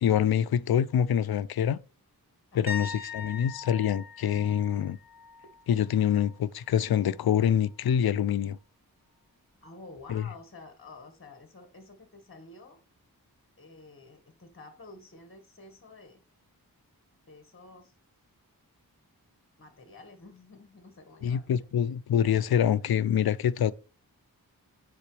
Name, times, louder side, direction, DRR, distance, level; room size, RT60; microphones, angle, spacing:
voice 1, 0.0-1.8 2.5-5.0 5.7-8.6 10.1-10.2 21.2-23.7, left 9 dB, 80° left, 0.5 m, -25 dB
voice 2, 2.5-2.9 9.6-12.8 13.6-16.2 17.3-17.9 19.6-21.5 21.8-21.9, left 3 dB, 35° left, 1.5 m, -50 dB
sound 1, 2.7-6.4 6.7-7.1 10.0-10.1, left 5 dB, 35° right, 2.8 m, -41 dB
9.8 x 3.8 x 3.2 m
wide cardioid pair, 75°, 37 cm